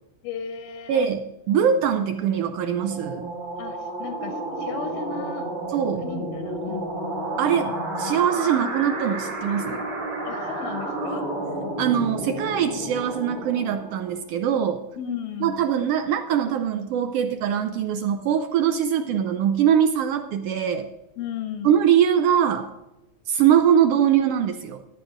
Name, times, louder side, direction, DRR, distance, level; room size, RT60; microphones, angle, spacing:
voice 1, 0.2-1.1 3.6-5.5 6.0-7.0 10.2-11.3 15.0-15.6 21.2-21.8, left 8 dB, 85° left, 5 dB, 2.3 m, -35 dB
voice 2, 0.9-3.3 5.7-6.0 7.4-9.9 11.8-14.8 15.4-20.9 21.6-22.7 23.3-24.8, right 9 dB, 80° right, 8 dB, 1.4 m, -22 dB
sound 1, 1.7-14.3, right 1 dB, 60° right, 3.7 m, -31 dB
15.5 x 11.0 x 2.6 m, 0.96 s
omnidirectional pair, 3.4 m